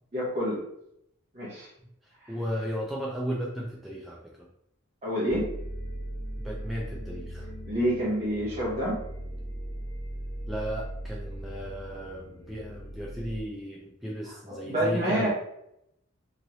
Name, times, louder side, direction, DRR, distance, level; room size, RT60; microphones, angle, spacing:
voice 1, 0.1-0.6 1.3-1.7 2.2-2.3 5.0-5.5 7.7-9.0 14.5-15.3, equal, 30° right, -8 dB, 0.9 m, -28 dB
voice 2, 2.0-4.5 6.4-7.5 10.5-15.3, equal, ahead, -5 dB, 0.4 m, -35 dB
sound 1, 5.3-13.4, right 1 dB, 60° left, 0.9 m, -38 dB
3.1 x 2.9 x 2.6 m, 0.77 s
head